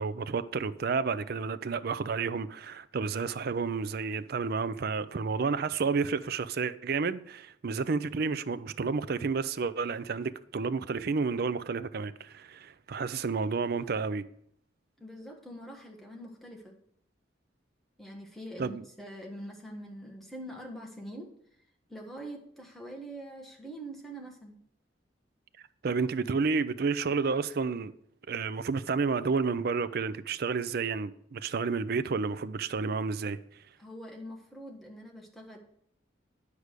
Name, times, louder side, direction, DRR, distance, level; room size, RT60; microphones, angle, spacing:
voice 1, 0.0-14.2 18.6-18.8 25.8-27.9 28.3-33.4, right 4 dB, 55° right, 0.5 m, -31 dB
voice 2, 15.0-16.7 18.0-21.3 21.9-24.6 33.8-35.6, right 1 dB, ahead, 1.5 m, -44 dB
9.7 x 4.9 x 6.6 m
head